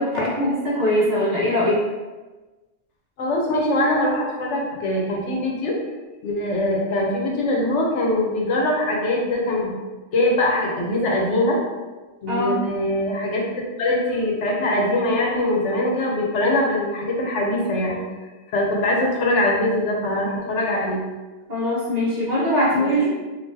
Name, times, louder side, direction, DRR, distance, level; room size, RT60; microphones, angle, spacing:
voice 1, 0.0-1.8 12.3-12.6 21.5-23.1, equal, 40° right, -9 dB, 0.9 m, -21 dB
voice 2, 3.2-5.7 6.2-9.8 10.1-11.6 12.2-18.0 18.5-21.0 22.8-23.1, left 1 dB, 80° left, -1 dB, 1.1 m, -22 dB
3.8 x 2.6 x 2.5 m, 1.2 s
omnidirectional pair, 1.2 m